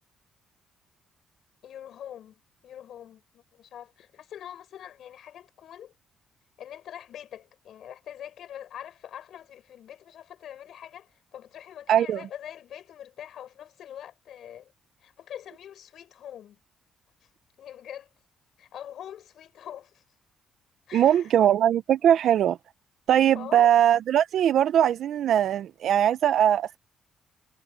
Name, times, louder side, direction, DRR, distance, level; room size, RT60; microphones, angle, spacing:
voice 1, 1.6-5.9 6.6-14.7 15.0-16.6 17.2-17.3 17.6-18.1 18.6-20.0 20.9-21.4 23.3-23.8, left 10 dB, 70° left, 5.0 m, -44 dB
voice 2, 11.9-12.2 20.9-22.6 23.1-26.8, right 10 dB, 70° right, 0.6 m, -21 dB
cardioid pair, 90°, 0 cm